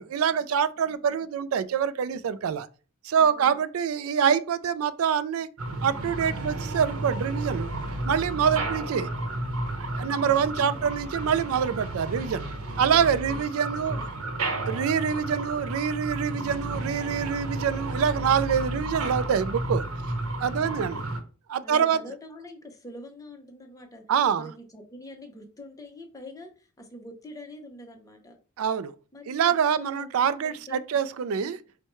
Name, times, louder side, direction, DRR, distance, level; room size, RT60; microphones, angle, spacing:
voice 1, 0.0-2.7 3.0-5.5 5.8-7.7 8.0-9.1 9.8-12.5 12.8-14.0 14.7-19.8 20.4-21.0 21.5-22.0 24.1-24.5 28.6-28.9 29.3-31.6, right 7 dB, 70° right, 0.3 m, -25 dB
voice 2, 0.8-1.2 3.2-3.6 8.5-8.8 10.6-10.8 12.7-14.3 20.6-21.0 21.6-24.1 24.3-28.4 29.1-31.0 31.3-31.6, left 1 dB, 15° left, 0.7 m, -46 dB
sound 1, 5.6-21.2, right 2 dB, 90° right, 0.9 m, -32 dB
4.5 x 2.2 x 4.3 m
head